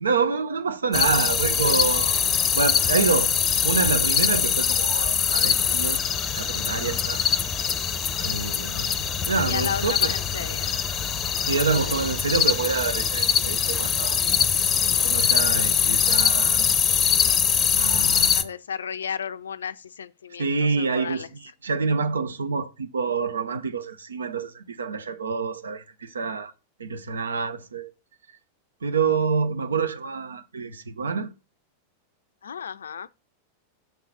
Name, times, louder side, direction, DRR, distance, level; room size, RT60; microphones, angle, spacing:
voice 1, 0.0-2.1 2.5-3.4 3.6-6.0 6.3-7.2 8.2-10.1 11.4-14.2 14.8-16.6 17.7-18.4 20.4-21.3 21.6-26.5 26.8-27.9 28.8-31.3, right 4 dB, 70° right, 0.6 m, -27 dB
sound 1, 0.9-18.4, left 8 dB, 25° left, 0.6 m, -23 dB
voice 2, 6.8-7.1 9.4-10.7 14.4-14.5 18.3-21.3 32.4-33.1, left 7 dB, 70° left, 0.4 m, -34 dB
7.1 x 3.8 x 5.6 m
figure-of-eight pair, 90°, 0 cm